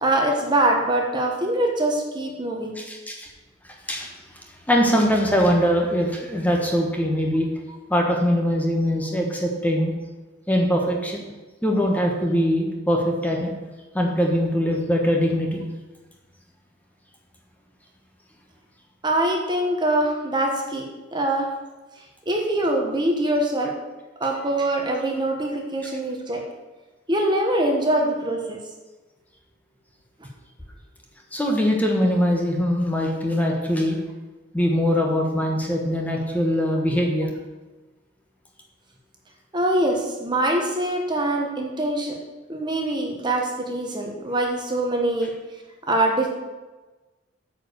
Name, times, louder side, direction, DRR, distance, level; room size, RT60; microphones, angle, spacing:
voice 1, 0.0-2.7 19.0-21.5 22.3-23.8 24.2-26.4 27.1-28.6 39.5-42.2 42.5-45.3 45.9-46.3, right 1 dB, 25° right, 1 dB, 1.2 m, -23 dB
voice 2, 2.8-3.3 3.9-4.1 4.7-7.5 7.9-9.9 10.5-11.3 11.6-13.5 13.9-15.6 31.3-34.0 34.5-37.3, equal, 10° left, 0 dB, 1.2 m, -22 dB
8.9 x 5.0 x 6.7 m, 1.2 s
head